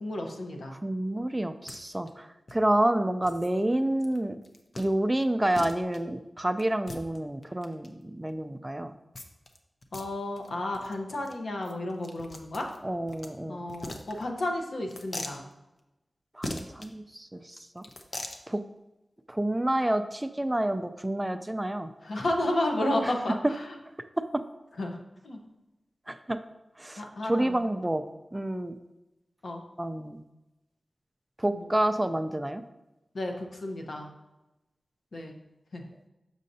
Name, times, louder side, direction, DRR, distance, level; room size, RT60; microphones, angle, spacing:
voice 1, 0.0-0.7 9.9-12.7 13.5-15.4 22.0-23.8 24.8-25.0 25.2-25.4 27.0-27.6 29.4-29.6 31.5-31.7 33.1-34.1 35.1-35.3 35.7-35.8, left 1 dB, 80° left, 2 dB, 0.9 m, -32 dB
voice 2, 0.8-4.4 4.8-8.9 12.8-13.6 16.4-17.8 18.5-18.6 19.3-21.9 23.0-23.1 24.2-24.4 26.1-26.4 26.8-28.0 28.3-28.8 29.8-30.2 31.4-32.6, right 1 dB, 15° right, 9 dB, 0.4 m, -29 dB
sound 1, 1.7-1.8 2.1-2.2 2.5-2.6 3.2-3.5 4.0-4.2 4.4-4.9 5.2-5.3 5.5-6.0 6.6-7.9 9.1-9.6 9.8-10.1 10.4-10.5 10.7-10.9 11.2-11.3 11.6-13.3 13.7-14.5 14.9-15.4 16.4-16.9 17.8-18.4, left 1 dB, 50° left, 0.7 m, -40 dB
6.5 x 6.3 x 2.7 m, 0.99 s
wide cardioid pair, 70°, 0 cm